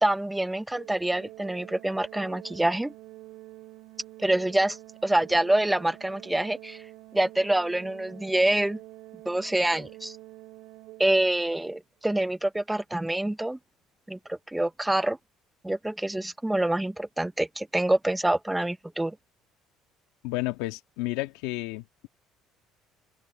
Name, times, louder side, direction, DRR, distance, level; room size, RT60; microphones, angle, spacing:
voice 1, 0.0-2.9 4.2-4.8 5.0-6.8 7.1-8.8 9.3-10.2 11.0-13.6 14.1-15.2 15.6-19.2, right 1 dB, 5° right, 0.6 m, -26 dB
Organ, 0.7-11.6, right 17 dB, 80° right, 2.4 m, -47 dB
voice 2, 20.2-22.1, left 19 dB, 90° left, 1.6 m, -32 dB
open air
cardioid pair, 105°, 0 cm